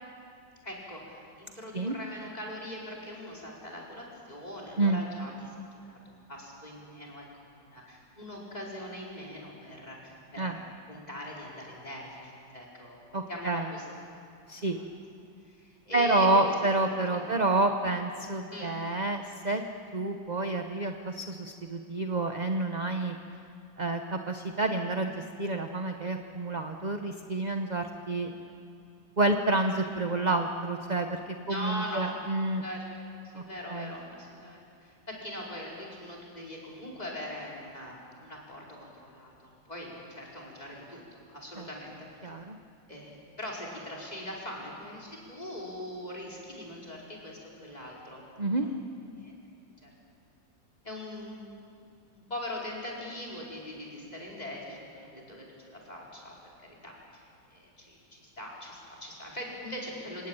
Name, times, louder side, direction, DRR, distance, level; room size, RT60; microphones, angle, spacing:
voice 1, 0.6-5.5 5.9-7.2 7.6-10.6 10.9-13.8 14.5-14.8 15.5-16.5 17.1-17.3 18.5-18.7 19.2-19.4 31.5-32.2 32.6-32.8 33.2-41.0 41.3-42.1 42.9-48.7 49.1-49.4 49.8-49.9 50.8-56.3 56.8-57.2 57.5-60.3, left 1 dB, 20° left, -3 dB, 5.0 m, -41 dB
voice 2, 13.1-13.7 14.5-14.8 15.9-19.6 19.9-23.1 23.8-28.3 29.2-31.2 31.5-32.6 33.3-33.4 33.7-33.9 41.6-41.7 42.2-42.6 48.4-48.7, right 2 dB, 30° right, 5 dB, 0.8 m, -29 dB
28.0 x 18.0 x 8.9 m, 2.4 s
omnidirectional pair, 2.1 m